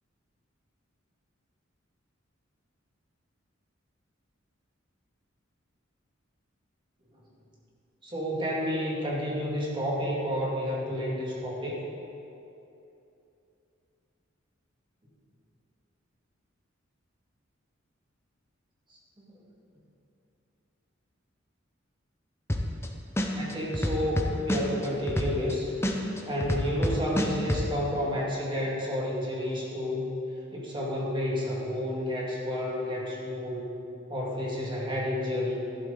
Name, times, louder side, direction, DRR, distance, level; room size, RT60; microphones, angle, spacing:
voice 1, 8.0-11.9 19.2-19.4 23.2-25.7 26.2-30.1 30.5-33.7 34.1-35.6, equal, 25° right, -4 dB, 2.2 m, -30 dB
sound 1, 22.5-22.9 23.2-25.5 25.8-27.6, left 1 dB, 15° left, 0.8 m, -27 dB
12.0 x 11.5 x 4.0 m, 2.8 s
head